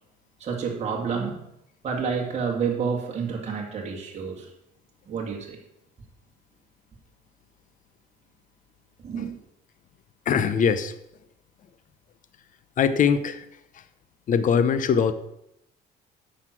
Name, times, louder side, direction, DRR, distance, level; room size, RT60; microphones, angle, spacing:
voice 1, 0.4-1.4 1.8-4.5 5.1-5.6 9.0-9.3, right 6 dB, 40° right, -1 dB, 2.2 m, -29 dB
voice 2, 10.3-10.9 12.8-13.5 14.3-15.1, left 7 dB, 50° left, 13 dB, 0.9 m, -21 dB
9.8 x 6.7 x 6.1 m, 0.80 s
cardioid pair, 110°, 17 cm